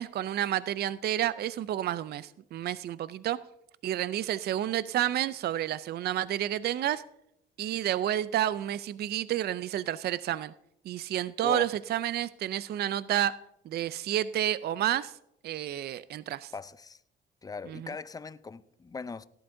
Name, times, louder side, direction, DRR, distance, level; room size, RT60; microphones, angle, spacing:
voice 1, 0.0-3.4 3.8-7.0 7.6-10.5 10.9-13.4 13.7-15.1 15.4-16.5 17.7-17.9, right 12 dB, 55° right, 0.4 m, -30 dB
voice 2, 16.5-17.0 17.4-19.3, left 4 dB, 20° left, 0.5 m, -39 dB
18.0 x 11.5 x 2.6 m
cardioid pair, 90°, 20 cm